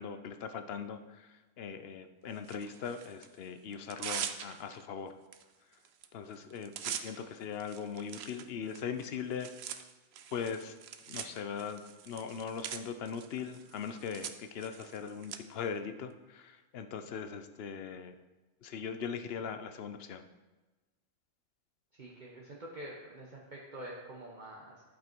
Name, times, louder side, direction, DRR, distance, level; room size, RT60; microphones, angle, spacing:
voice 1, 0.0-5.1 6.1-9.5 10.3-10.7 11.1-18.1 18.6-20.3, left 6 dB, 65° left, 9 dB, 0.9 m, -40 dB
Tearing, 2.4-3.3 3.7-4.8 5.3-5.4 5.7-6.1 6.3-15.4, right 8 dB, 70° right, 0.9 m, -43 dB
voice 2, 22.0-24.8, right 1 dB, 45° right, -3 dB, 1.2 m, -46 dB
11.5 x 5.4 x 4.5 m, 1.2 s
omnidirectional pair, 1.1 m